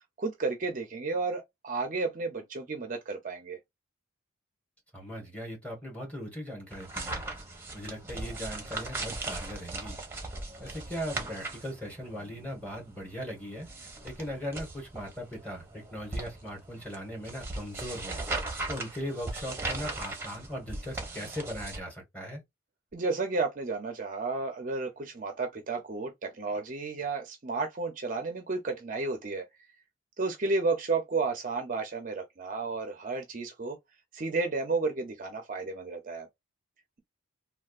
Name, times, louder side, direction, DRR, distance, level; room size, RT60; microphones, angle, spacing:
voice 1, 0.2-3.6 22.9-29.5 30.2-33.8 34.1-36.3, right 3 dB, 40° right, 0.5 m, -32 dB
voice 2, 4.9-7.2 7.7-10.0 10.6-13.7 14.0-18.2 18.7-22.4, equal, 5° left, 1.3 m, -39 dB
sound 1, 6.7-21.8, right 2 dB, 10° right, 0.8 m, -39 dB
3.4 x 2.2 x 2.4 m
head